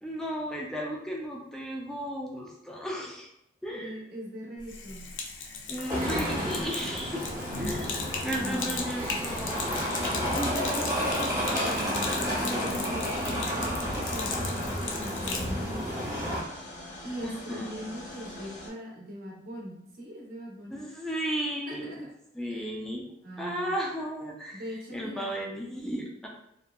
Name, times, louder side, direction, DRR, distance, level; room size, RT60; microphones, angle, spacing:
voice 1, 0.0-3.3 3.6-4.0 5.7-7.2 7.6-9.9 10.1-10.7 17.2-17.7 20.7-22.0 22.3-23.1 23.4-24.7 24.9-26.3, equal, 5° left, -2 dB, 0.3 m, -34 dB
voice 2, 3.7-5.1 5.9-6.6 8.3-8.9 10.3-12.0 12.4-16.3 17.0-20.8 21.7-22.1 22.5-22.7 23.2-23.8 24.5-25.3, equal, 50° right, -3 dB, 0.7 m, -41 dB
Sink (filling or washing), 4.6-15.5, left 4 dB, 75° left, 0.4 m, -37 dB
sound 1, 5.9-16.4, equal, 15° right, 0.8 m, -31 dB
sound 2, 9.2-18.7, left 1 dB, 40° left, 0.6 m, -43 dB
2.6 x 2.1 x 2.2 m, 0.77 s
head